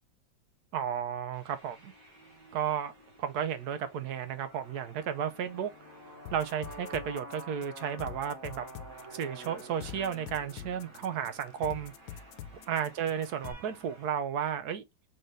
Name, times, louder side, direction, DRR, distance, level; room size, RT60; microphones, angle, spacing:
voice 1, 0.7-1.9 2.5-2.9 3.2-5.7 6.3-8.6 9.1-11.9 12.7-14.8, right 8 dB, 65° right, 1.0 m, -33 dB
sound 1, 1.3-14.1, right 1 dB, 45° right, 2.1 m, -50 dB
sound 2, 6.3-13.5, left 10 dB, 75° left, 1.3 m, -45 dB
4.0 x 3.9 x 3.2 m
omnidirectional pair, 2.1 m